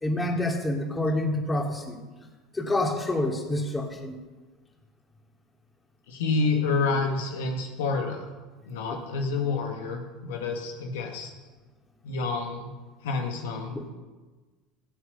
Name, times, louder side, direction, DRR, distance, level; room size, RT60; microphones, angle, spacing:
voice 1, 0.0-2.0 2.5-4.2 13.7-13.8, left 1 dB, 15° left, 2 dB, 2.8 m, -27 dB
voice 2, 6.1-8.3 8.6-11.3 12.0-12.7 13.0-13.9, left 4 dB, 80° left, 3 dB, 1.9 m, -28 dB
16.5 x 8.0 x 7.0 m, 1.3 s
hypercardioid pair, 85°, 0 cm